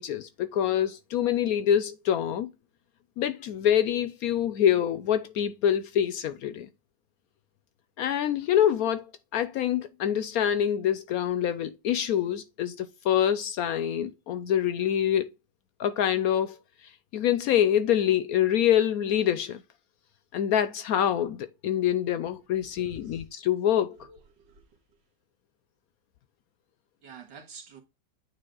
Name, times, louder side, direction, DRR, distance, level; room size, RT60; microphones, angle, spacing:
voice 1, 0.0-2.5 3.2-6.7 8.0-9.1 9.3-15.3 15.8-16.6 17.1-19.6 20.3-24.0, left 10 dB, 70° left, 0.9 m, -25 dB
voice 2, 22.6-23.3 24.0-24.8 27.0-27.8, right 6 dB, 90° right, 2.3 m, -49 dB
9.0 x 3.5 x 3.8 m
omnidirectional pair, 1.9 m